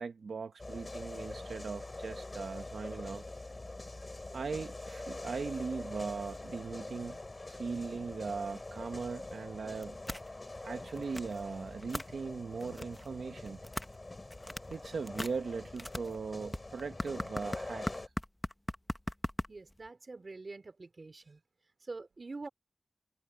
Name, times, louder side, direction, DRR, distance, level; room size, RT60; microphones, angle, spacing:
voice 1, 0.0-3.2 4.3-7.2 7.5-10.0 10.6-13.6 14.7-18.1, right 5 dB, 85° right, 1.0 m, -39 dB
sound 1, 0.6-18.1, left 2 dB, 30° left, 3.4 m, -45 dB
sound 2, 9.7-10.3 10.7-11.4 11.7-12.1 12.6-13.1 13.5-14.0 14.3-14.8 15.1-19.9, left 1 dB, 15° left, 1.1 m, -38 dB
voice 2, 19.5-21.4 21.8-22.5, right 3 dB, 45° right, 3.5 m, -45 dB
wide cardioid pair, 80°, 0 cm